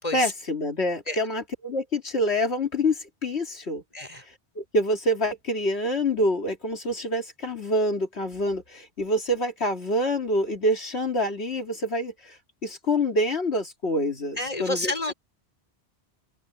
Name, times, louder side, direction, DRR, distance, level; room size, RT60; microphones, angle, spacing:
voice 1, 0.1-3.8 4.3-15.1, left 1 dB, 80° left, 2.6 m, -26 dB
voice 2, 3.9-4.2 14.4-15.1, left 1 dB, 35° left, 4.8 m, -29 dB
open air
omnidirectional pair, 1.1 m